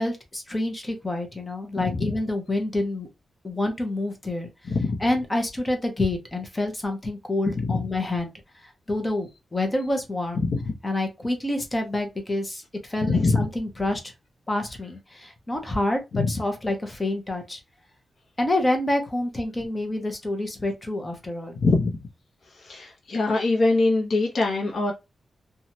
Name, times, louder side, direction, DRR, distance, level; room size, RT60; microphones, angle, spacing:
voice 1, 0.0-3.1 3.4-4.7 5.0-8.3 8.6-10.4 10.8-14.1 14.5-17.6 18.4-21.6, left 1 dB, 20° left, 0.8 m, -28 dB
voice 2, 4.7-5.0 7.6-7.7 10.4-10.6 13.1-13.5 16.2-16.3 21.6-21.9 22.6-24.9, left 3 dB, 50° left, 0.8 m, -22 dB
3.0 x 2.3 x 2.7 m
wide cardioid pair, 145°, 0 cm